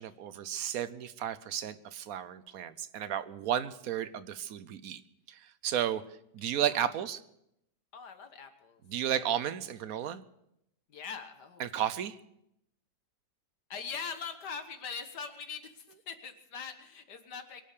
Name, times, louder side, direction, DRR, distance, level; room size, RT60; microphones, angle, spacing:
voice 1, 0.0-5.0 5.3-6.0 6.3-7.2 8.9-10.2 11.6-12.2, right 10 dB, 65° right, 15 dB, 1.1 m, -33 dB
voice 2, 7.9-8.8 9.1-9.3 10.9-11.6 13.7-17.6, left 6 dB, 80° left, 7 dB, 2.0 m, -42 dB
23.5 x 8.6 x 6.7 m, 0.80 s
omnidirectional pair, 1.8 m